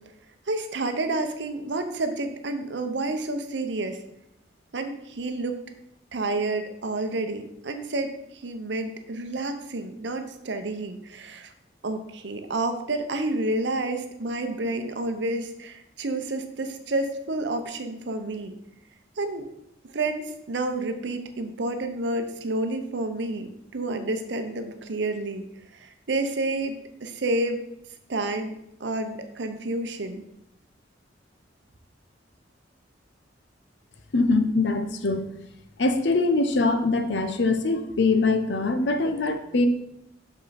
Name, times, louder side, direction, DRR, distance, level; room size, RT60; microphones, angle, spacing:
voice 1, 0.5-4.0 4.7-5.6 6.1-11.5 11.8-18.5 19.2-19.5 19.8-25.5 25.8-27.6 28.1-30.2, right 2 dB, 70° right, 7 dB, 0.7 m, -29 dB
voice 2, 34.1-35.2 35.8-39.7, left 3 dB, 65° left, 8 dB, 0.7 m, -23 dB
6.1 x 5.4 x 4.1 m, 0.79 s
head